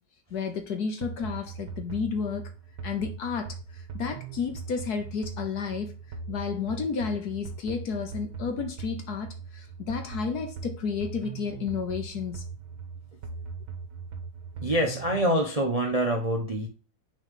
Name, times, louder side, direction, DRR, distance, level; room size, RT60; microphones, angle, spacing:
voice 1, 0.3-2.5 2.8-5.9 6.3-12.4, left 6 dB, 60° left, 1.3 m, -32 dB
sound 1, 1.0-15.2, right 5 dB, 65° right, 1.7 m, -40 dB
voice 2, 14.6-16.7, right 1 dB, 30° right, 0.7 m, -25 dB
6.5 x 3.8 x 3.8 m
omnidirectional pair, 2.1 m